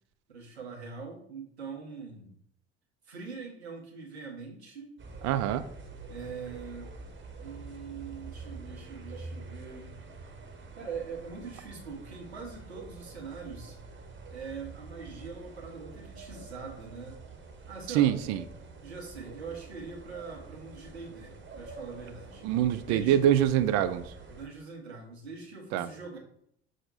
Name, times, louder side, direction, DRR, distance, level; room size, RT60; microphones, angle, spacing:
voice 1, 0.3-2.3 3.1-5.0 6.1-6.9 7.4-10.0 10.8-13.8 14.3-17.2 17.7-18.1 18.8-22.5 22.8-23.3 24.3-26.2, right 5 dB, 90° right, -1 dB, 0.9 m, -42 dB
sound 1, 5.0-24.5, right 3 dB, 35° right, 1.0 m, -46 dB
voice 2, 5.2-5.7 17.9-18.4 22.4-24.0 25.7-25.9, right 11 dB, 60° right, 13 dB, 0.4 m, -24 dB
6.1 x 2.1 x 4.0 m, 0.71 s
figure-of-eight pair, 55°, 32 cm